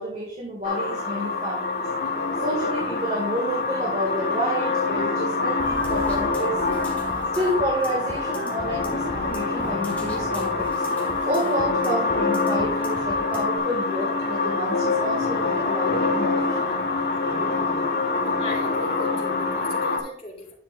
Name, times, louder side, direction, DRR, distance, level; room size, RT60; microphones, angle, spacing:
voice 1, 0.0-1.9 2.4-6.7 7.3-10.7 11.2-16.7, equal, 40° right, -2 dB, 1.8 m, -29 dB
sound 1, 0.6-20.0, left 3 dB, 60° left, 1.5 m, -25 dB
sound 2, 5.6-13.6, left 1 dB, 10° left, 1.9 m, -37 dB
voice 2, 18.4-20.5, left 2 dB, 30° left, -4 dB, 2.9 m, -38 dB
10.5 x 7.5 x 2.4 m, 0.65 s
head